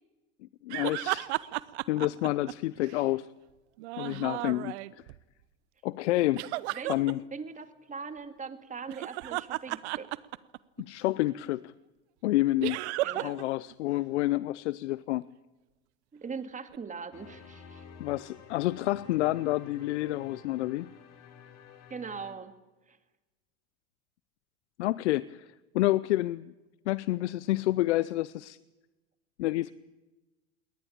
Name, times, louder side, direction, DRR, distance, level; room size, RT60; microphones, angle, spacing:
voice 1, 0.6-1.5 1.9-3.3 4.0-4.7 5.8-6.4 6.9-7.2 10.8-11.7 12.2-12.8 13.2-15.2 18.0-20.9 24.8-26.5 26.9-28.6 29.4-29.7, left 17 dB, 75° left, 19 dB, 0.7 m, -29 dB
sound 1, 0.7-3.0 3.8-5.2 6.4-7.1 8.8-10.8 12.6-13.4 13.7-13.8 16.7-16.8, right 19 dB, 70° right, 1.0 m, -34 dB
voice 2, 6.5-7.0 7.3-10.1 13.0-13.4 16.1-17.8 21.9-22.5 22.9-23.0, right 5 dB, 20° right, 10 dB, 2.3 m, -41 dB
sound 2, 17.1-22.3, left 6 dB, 50° left, 4.2 m, -51 dB
22.0 x 19.0 x 8.8 m, 1.1 s
hypercardioid pair, 85°, 34 cm